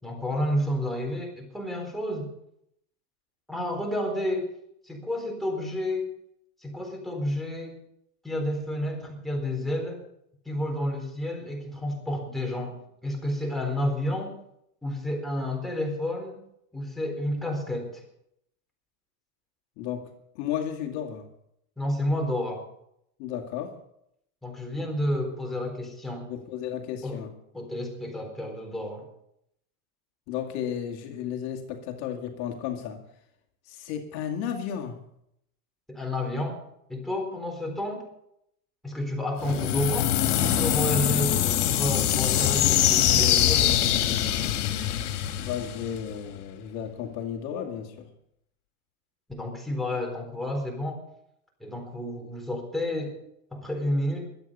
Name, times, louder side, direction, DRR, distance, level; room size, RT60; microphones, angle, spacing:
voice 1, 0.0-2.3 3.5-4.5 4.8-6.1 6.6-7.7 8.2-10.0 10.5-12.7 13.0-14.3 14.8-16.4 16.7-18.0 21.8-22.7 24.4-26.3 27.0-27.2 27.5-29.1 35.9-36.6 36.9-38.1 38.8-40.1 40.4-43.8 49.3-51.0 51.6-53.2 53.5-54.3, left 1 dB, ahead, 0 dB, 4.1 m, -30 dB
voice 2, 19.8-20.1 20.3-21.3 23.2-23.8 26.3-27.3 30.3-33.0 33.6-35.0 45.4-48.1, left 9 dB, 60° left, 3 dB, 2.3 m, -33 dB
sound 1, 39.4-46.3, left 11 dB, 85° left, 2.2 m, -23 dB
23.0 x 8.7 x 5.5 m, 0.75 s
supercardioid pair, 140°, 45 cm